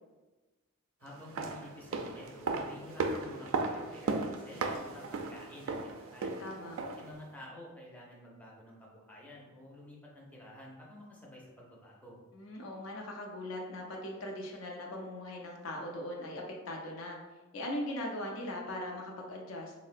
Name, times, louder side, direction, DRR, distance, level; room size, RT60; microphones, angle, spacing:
voice 1, 1.0-6.4 7.0-12.2, left 1 dB, 10° left, -4 dB, 0.5 m, -50 dB
sound 1, 1.1-7.2 7.4-7.5, right 3 dB, 80° right, 0.3 m, -36 dB
voice 2, 6.4-6.8 12.3-17.2 17.5-19.7, left 1 dB, 85° left, 0 dB, 0.5 m, -40 dB
3.6 x 2.0 x 2.4 m, 1.1 s
head